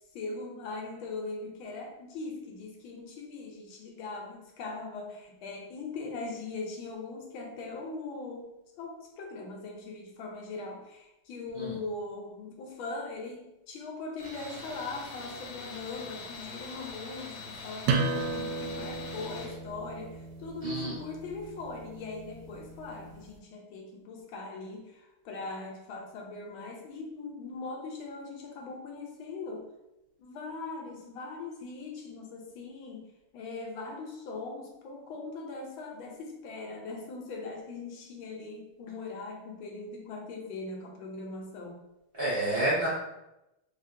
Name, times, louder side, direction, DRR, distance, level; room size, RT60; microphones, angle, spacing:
voice 1, 0.1-29.7 30.2-41.8, left 3 dB, 75° left, 1 dB, 1.4 m, -40 dB
Tools, 14.2-19.6, left 3 dB, 60° left, 1.3 m, -43 dB
sound 1, 17.8-23.2, right 4 dB, 75° right, 1.2 m, -35 dB
voice 2, 20.6-20.9 42.2-42.9, right 1 dB, 40° right, -9 dB, 0.8 m, -29 dB
3.5 x 2.8 x 2.6 m, 0.91 s
omnidirectional pair, 2.4 m